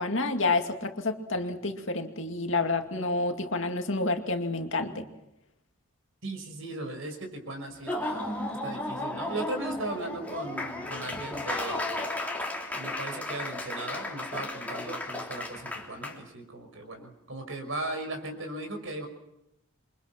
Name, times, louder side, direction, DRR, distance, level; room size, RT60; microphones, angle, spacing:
voice 1, 0.0-5.1, left 3 dB, 55° left, 4 dB, 2.4 m, -29 dB
voice 2, 6.2-12.1 12.7-19.1, right 2 dB, 60° right, 5 dB, 5.8 m, -37 dB
Laughter / Applause, 7.7-16.2, left 2 dB, 5° left, 3.2 m, -34 dB
28.5 x 24.0 x 6.1 m, 0.87 s
head